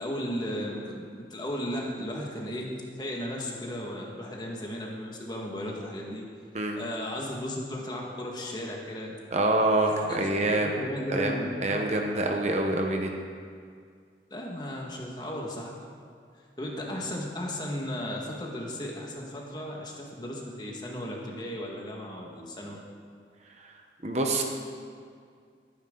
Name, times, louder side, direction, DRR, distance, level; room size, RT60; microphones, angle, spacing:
voice 1, 0.0-6.2 6.7-9.1 9.8-12.0 14.3-15.7 16.6-22.8, equal, 25° left, -1 dB, 1.8 m, -35 dB
voice 2, 9.3-10.7 11.1-11.4 11.6-13.1 24.0-24.4, right 2 dB, 40° right, 2 dB, 1.1 m, -26 dB
21.0 x 10.0 x 3.9 m, 2.2 s
head